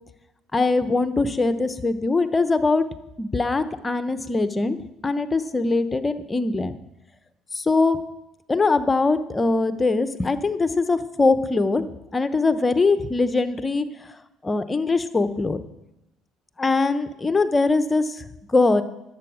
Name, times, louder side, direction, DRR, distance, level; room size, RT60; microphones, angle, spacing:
voice 1, 0.5-2.8 3.2-4.8 5.0-6.7 7.5-8.0 8.5-11.8 12.1-13.9 14.4-15.6 16.6-18.2 18.5-18.8, left 3 dB, 20° left, 11 dB, 0.9 m, -22 dB
11.0 x 7.8 x 6.2 m, 0.89 s
supercardioid pair, 85°, 0 cm